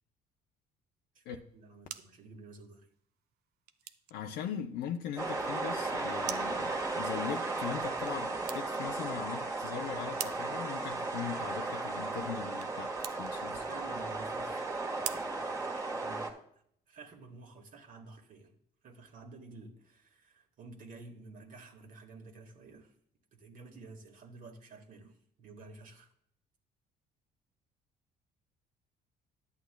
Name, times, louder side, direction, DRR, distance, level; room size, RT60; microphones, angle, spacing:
voice 1, 1.1-2.9 13.5-16.3 16.9-18.5 18.8-22.9 23.3-26.1, right 3 dB, 55° right, 1.6 m, -51 dB
sound 1, 1.4-16.4, right 11 dB, 70° right, 0.5 m, -48 dB
voice 2, 4.1-13.6, left 9 dB, 75° left, 0.6 m, -40 dB
sound 2, 5.2-16.3, right 3 dB, 20° right, 1.4 m, -35 dB
11.5 x 8.2 x 2.2 m
cardioid pair, 110°, 17 cm